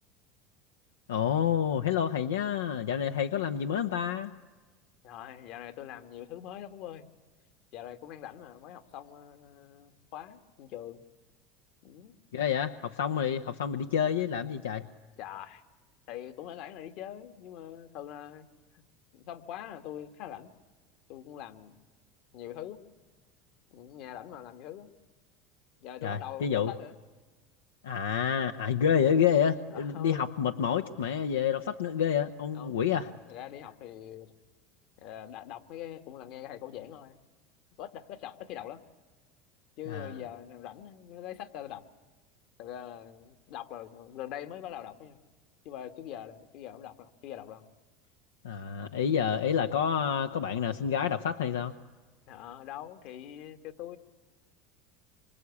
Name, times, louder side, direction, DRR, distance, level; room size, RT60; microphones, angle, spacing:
voice 1, 1.1-4.3 12.3-14.9 26.0-26.7 27.8-33.1 39.9-40.1 48.4-51.7, left 8 dB, 90° left, 7 dB, 0.9 m, -28 dB
voice 2, 5.0-7.1 7.7-11.0 11.8-12.2 15.2-15.6 16.1-18.5 18.7-18.8 19.1-20.5 21.1-21.8 22.3-22.8 23.7-24.9 25.8-27.0 29.7-30.3 32.5-32.8 33.3-34.3 35.0-37.2 37.8-38.8 39.8-41.8 42.6-45.2 45.6-47.7 52.3-54.0, left 11 dB, 60° left, 10 dB, 1.8 m, -43 dB
25.5 x 25.0 x 8.5 m, 1.3 s
hypercardioid pair, 90°, 0 cm